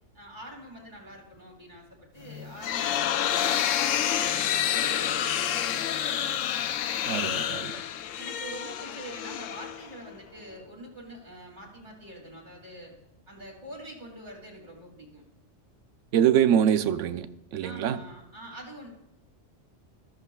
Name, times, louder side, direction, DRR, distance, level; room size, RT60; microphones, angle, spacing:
voice 1, 0.1-6.2 6.9-7.5 8.1-12.9 13.3-15.2 17.6-18.9, right 1 dB, 40° right, -1 dB, 2.8 m, -45 dB
sound 1, 2.3-10.1, left 10 dB, 85° left, 1.0 m, -28 dB
voice 2, 7.1-7.8 16.1-17.3 17.5-18.0, right 9 dB, 80° right, 12 dB, 1.0 m, -24 dB
14.0 x 13.0 x 2.3 m, 0.87 s
omnidirectional pair, 1.3 m